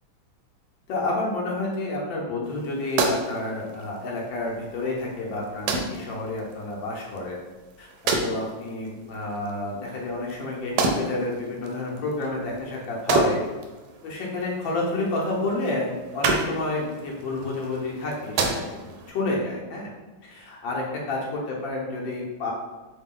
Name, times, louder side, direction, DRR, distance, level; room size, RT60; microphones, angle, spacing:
voice 1, 0.9-7.4 7.8-7.9 8.2-13.4 14.0-19.9 20.2-21.2 21.5-22.5, left 2 dB, 70° left, -3 dB, 1.4 m, -29 dB
sound 1, 2.4-19.1, right 3 dB, 80° right, 1.3 m, -32 dB
3.9 x 2.2 x 3.6 m, 1.2 s
omnidirectional pair, 2.3 m